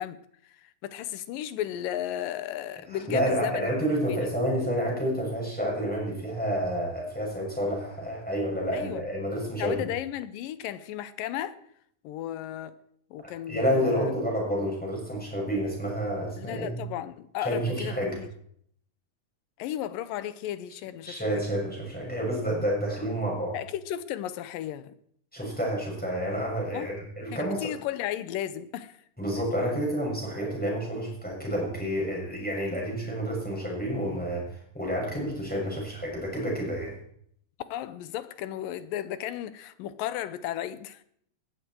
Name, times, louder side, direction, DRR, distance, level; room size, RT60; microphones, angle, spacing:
voice 1, 0.0-4.2 8.7-9.0 9.6-11.6 12.0-12.7 13.1-14.1 16.4-18.3 19.6-21.4 23.5-24.9 26.7-26.9 27.4-29.0 37.7-41.0, left 12 dB, 90° left, 2.6 m, -35 dB
voice 2, 2.9-9.9 13.5-16.8 17.4-18.2 21.1-23.6 25.3-27.7 29.2-37.0, equal, ahead, 7.0 m, -29 dB
19.0 x 14.0 x 4.7 m
omnidirectional pair, 3.8 m